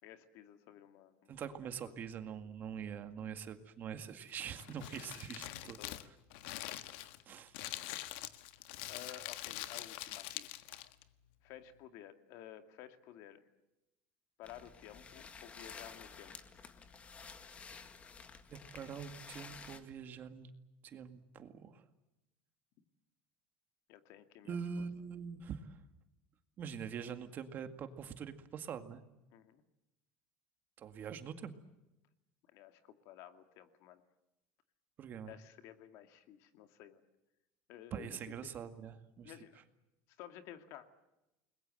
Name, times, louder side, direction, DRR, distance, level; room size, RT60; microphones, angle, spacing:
voice 1, 0.0-1.5 1.9-2.0 5.4-6.1 6.8-6.9 8.8-10.5 11.4-13.4 14.4-16.4 23.9-24.9 29.3-29.6 32.5-34.0 35.3-37.0 37.7-38.3 39.2-39.6 40.1-40.9, left 11 dB, 55° left, 8 dB, 2.3 m, -54 dB
voice 2, 1.3-5.8 7.3-7.5 18.5-20.5 20.8-21.8 24.4-25.8 26.6-29.0 30.8-31.5 35.0-35.3 37.9-39.3, right 7 dB, 35° right, 8 dB, 2.0 m, -44 dB
Crumpling crinkling, 4.3-11.0, left 15 dB, 80° left, 1.6 m, -44 dB
sound 1, 14.4-19.8, left 5 dB, 20° left, 2.0 m, -52 dB
30.0 x 21.5 x 7.8 m, 0.94 s
cardioid pair, 160°, 6 cm